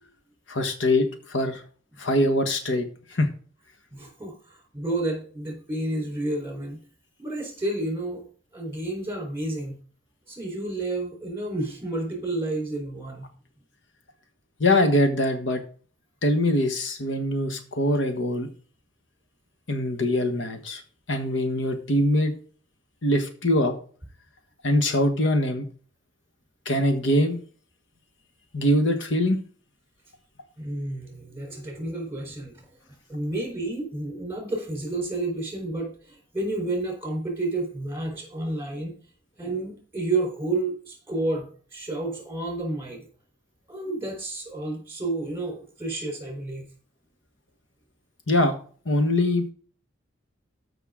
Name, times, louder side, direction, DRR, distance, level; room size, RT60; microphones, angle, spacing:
voice 1, 0.5-1.6 2.0-2.9 3.1-3.3 14.6-15.6 16.2-18.5 19.7-20.8 21.1-22.3 23.0-23.7 24.6-25.6 26.6-27.4 28.5-29.4 48.3-48.5 48.9-49.5, left 1 dB, 75° left, 6 dB, 1.3 m, -23 dB
voice 2, 3.9-6.8 7.2-8.2 8.5-9.8 10.3-13.3 30.6-32.6 33.1-39.0 39.4-43.1 43.7-46.7, right 2 dB, 15° right, 1 dB, 3.8 m, -30 dB
13.5 x 5.7 x 3.7 m, 0.42 s
head